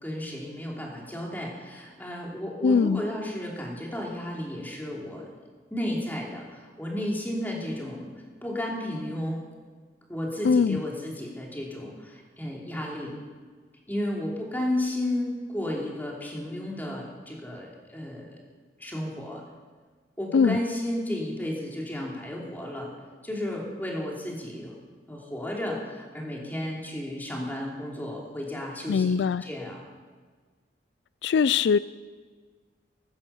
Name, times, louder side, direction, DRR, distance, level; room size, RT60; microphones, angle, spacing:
voice 1, 0.0-5.2 5.7-8.1 8.4-9.4 10.1-13.1 13.9-18.4 18.8-19.4 20.2-22.9 23.2-24.7 25.1-29.8, left 1 dB, 10° left, -2 dB, 3.0 m, -33 dB
voice 2, 2.6-3.0 10.4-10.8 20.3-20.6 28.9-29.5 31.2-31.8, left 6 dB, 80° left, 17 dB, 0.3 m, -21 dB
15.5 x 11.5 x 7.0 m, 1.5 s
head